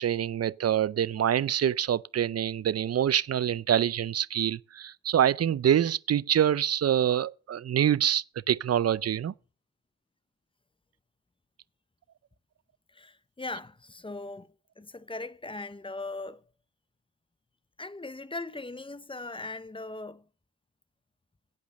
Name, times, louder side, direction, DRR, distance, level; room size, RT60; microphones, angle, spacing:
voice 1, 0.0-9.3, right 10 dB, 35° right, 0.4 m, -26 dB
voice 2, 12.9-14.5 14.8-16.4 17.8-20.2, left 2 dB, 10° left, 0.6 m, -39 dB
8.5 x 8.4 x 6.3 m
cardioid pair, 80°, 44 cm